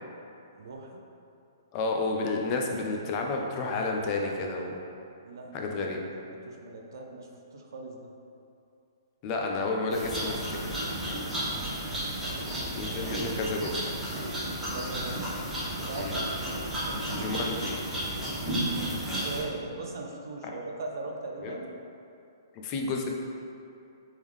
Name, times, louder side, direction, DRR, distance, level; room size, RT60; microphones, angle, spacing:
voice 1, 0.6-1.0 5.2-6.0 6.3-8.1 12.1-12.7 14.7-15.2 15.7-16.3 16.8-17.4 19.2-21.7, right 2 dB, 65° right, 1 dB, 0.5 m, -40 dB
voice 2, 1.7-4.8 5.5-6.0 9.2-10.6 12.7-13.8 16.0-16.2 17.1-17.8 20.4-20.5 21.4-21.5 22.6-23.1, left 3 dB, 30° left, 1 dB, 0.4 m, -31 dB
sound 1, 9.9-19.4, right 1 dB, 5° right, 0.7 m, -33 dB
3.5 x 3.5 x 3.1 m, 2.6 s
hypercardioid pair, 155°, 2 cm